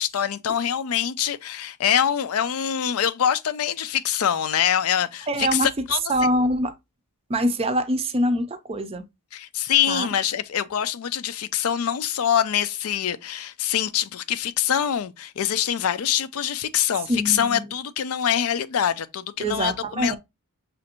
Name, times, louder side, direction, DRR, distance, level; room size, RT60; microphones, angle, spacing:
voice 1, 0.0-6.0 9.3-20.2, left 9 dB, 75° left, 0.4 m, -24 dB
voice 2, 5.3-5.7 6.1-6.7 7.3-9.0 9.9-10.1 17.1-17.7 19.4-20.2, equal, 25° right, 0.5 m, -24 dB
6.1 x 2.5 x 2.8 m
head